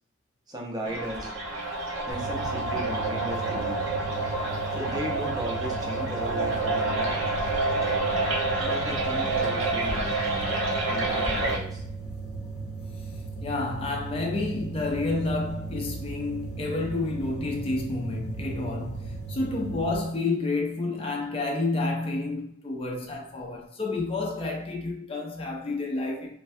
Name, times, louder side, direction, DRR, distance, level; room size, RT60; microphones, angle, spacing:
voice 1, 0.5-1.3 2.0-3.9 4.7-7.1 8.6-10.6 10.9-11.8, equal, 20° right, 0.6 m, -36 dB
sound 1, 0.9-11.6, right 2 dB, 70° right, 0.8 m, -28 dB
sound 2, 2.1-20.0, right 4 dB, 75° left, 0.6 m, -37 dB
voice 2, 13.4-26.4, left 2 dB, 25° left, 0.4 m, -30 dB
3.1 x 2.2 x 2.6 m
head